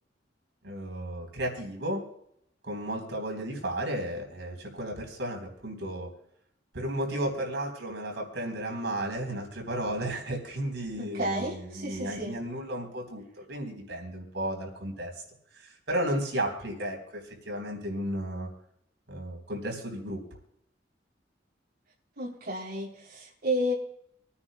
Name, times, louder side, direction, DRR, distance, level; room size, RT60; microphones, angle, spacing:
voice 1, 0.6-2.0 2.6-6.1 6.7-15.1 15.5-18.5 19.1-20.2, right 1 dB, 80° right, 1 dB, 3.7 m, -33 dB
voice 2, 11.0-12.4 22.2-23.7, equal, 60° right, -4 dB, 3.2 m, -32 dB
27.0 x 9.6 x 2.2 m, 0.72 s
head